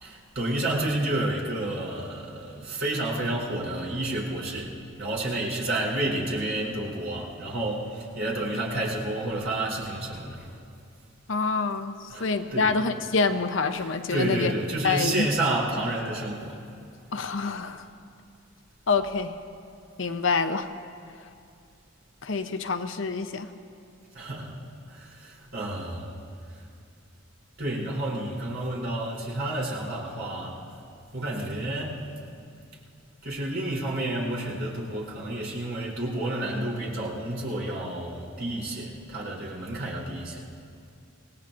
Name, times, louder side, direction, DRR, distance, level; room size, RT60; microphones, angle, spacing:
voice 1, 0.0-4.7 5.0-10.5 12.1-12.7 14.1-16.6 24.1-24.6 24.9-26.1 27.6-30.6 31.1-32.0 33.2-40.5, right 1 dB, 70° right, -4 dB, 3.4 m, -30 dB
voice 2, 11.3-11.9 12.2-14.5 14.8-15.3 17.1-17.9 18.9-19.3 20.0-20.7 22.2-23.5, left 4 dB, 65° left, 8 dB, 0.7 m, -26 dB
26.0 x 18.5 x 2.6 m, 2.4 s
head